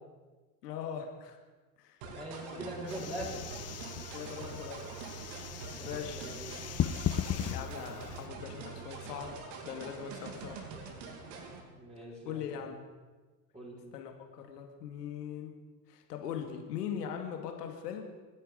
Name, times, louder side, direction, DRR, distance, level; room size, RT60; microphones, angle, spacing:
voice 1, 0.6-1.4 1.8-2.0 2.5-2.6 3.0-3.1 4.1-4.9 5.8-6.3 7.5-10.7 12.3-12.9 13.9-15.5 15.9-18.1, left 8 dB, 80° left, 4 dB, 2.2 m, -41 dB
sound 1, 2.0-11.6, right 4 dB, 65° right, 2.9 m, -45 dB
voice 2, 2.1-3.4 5.8-6.7 11.7-12.5 13.5-13.8, right 1 dB, 15° right, -4 dB, 6.9 m, -42 dB
sound 2, 2.6-9.2, right 8 dB, 40° right, 5.6 m, -50 dB
sound 3, 2.9-8.3, left 10 dB, 30° left, 0.9 m, -37 dB
27.0 x 10.0 x 5.2 m, 1.3 s
hypercardioid pair, 75°, 48 cm